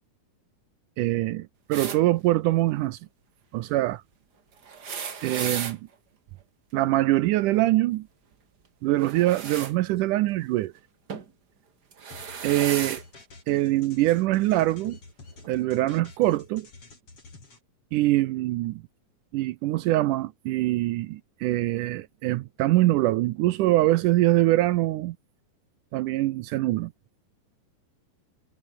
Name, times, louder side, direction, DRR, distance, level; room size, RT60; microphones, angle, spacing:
voice 1, 1.0-3.0 3.5-4.0 5.2-5.8 6.7-8.1 8.8-10.7 12.4-13.0 13.5-15.0 15.5-16.7 17.9-18.8 19.3-25.2 25.9-26.9, right 16 dB, 75° right, 2.1 m, -23 dB
sound 1, 1.7-2.0 4.6-5.8 9.0-9.7 11.1-11.3 11.9-13.0 14.1-14.2 15.4-15.5, right 6 dB, 35° right, 1.9 m, -34 dB
sound 2, 12.1-17.6, left 3 dB, 40° left, 6.6 m, -48 dB
omnidirectional pair, 4.0 m